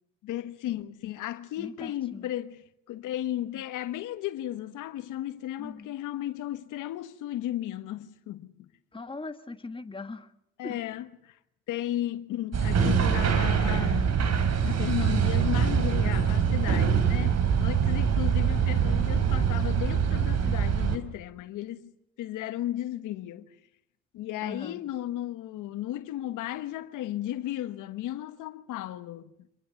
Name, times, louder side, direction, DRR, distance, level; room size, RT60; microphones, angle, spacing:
voice 1, 0.2-8.7 10.6-11.4 11.7-14.1 14.6-21.9 22.2-23.5 24.1-29.3, left 13 dB, 90° left, 1.3 m, -35 dB
voice 2, 1.6-2.3 5.6-5.9 8.9-10.3 10.6-10.8 24.4-24.8, left 3 dB, 15° left, 1.7 m, -40 dB
sound 1, 12.5-21.0, right 7 dB, 60° right, 3.2 m, -24 dB
26.0 x 21.5 x 7.1 m
cardioid pair, 90°, 30 cm